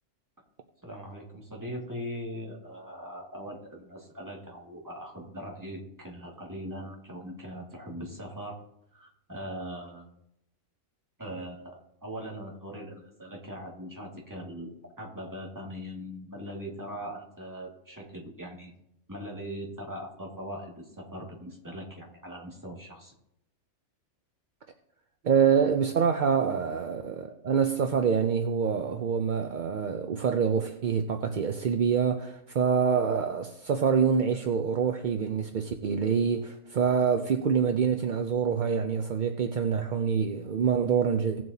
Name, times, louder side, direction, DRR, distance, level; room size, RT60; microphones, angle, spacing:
voice 1, 0.8-8.6 8.9-10.2 11.2-14.7 15.0-18.7 19.1-23.1, equal, 15° right, 2.1 m, -40 dB
voice 2, 25.2-41.4, right 6 dB, 50° right, 0.6 m, -26 dB
17.5 x 7.6 x 2.8 m
omnidirectional pair, 1.4 m